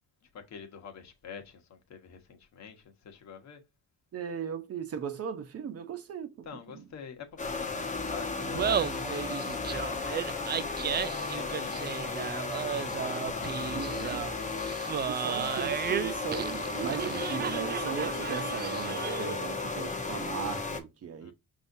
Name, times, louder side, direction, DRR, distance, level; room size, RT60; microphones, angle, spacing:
voice 1, 0.2-3.6 6.4-14.5 21.2-21.3, left 6 dB, 65° left, 1.2 m, -47 dB
voice 2, 4.1-6.8 13.7-14.3 15.1-21.3, right 7 dB, 50° right, 0.9 m, -37 dB
sound 1, 7.4-20.8, left 3 dB, 25° left, 1.0 m, -34 dB
Laughter, 8.4-19.5, right 8 dB, 35° right, 0.4 m, -34 dB
5.5 x 2.8 x 2.6 m
cardioid pair, 90°, 30 cm